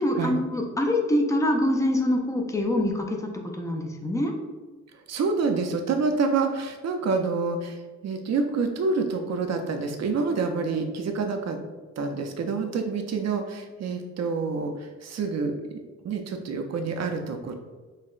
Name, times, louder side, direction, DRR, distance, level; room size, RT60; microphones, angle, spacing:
voice 1, 0.0-4.3, left 1 dB, 10° left, 2 dB, 0.3 m, -25 dB
voice 2, 5.1-11.6 12.0-15.8 16.0-17.5, right 4 dB, 60° right, 5 dB, 0.4 m, -27 dB
5.4 x 2.0 x 2.4 m, 1.3 s
wide cardioid pair, 155°, 30 cm